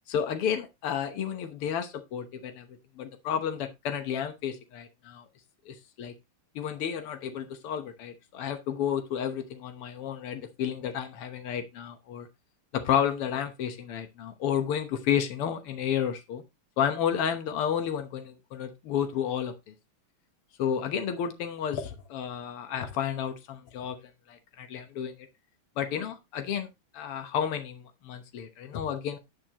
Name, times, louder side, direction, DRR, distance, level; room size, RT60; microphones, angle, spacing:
voice 1, 0.1-2.7 3.0-5.3 5.7-6.1 6.6-12.3 12.7-16.4 16.8-19.7 20.6-24.0 24.3-25.1 25.8-29.2, left 8 dB, 85° left, 7 dB, 2.1 m, -31 dB
10.0 x 9.6 x 2.9 m, 0.23 s
omnidirectional pair, 2.4 m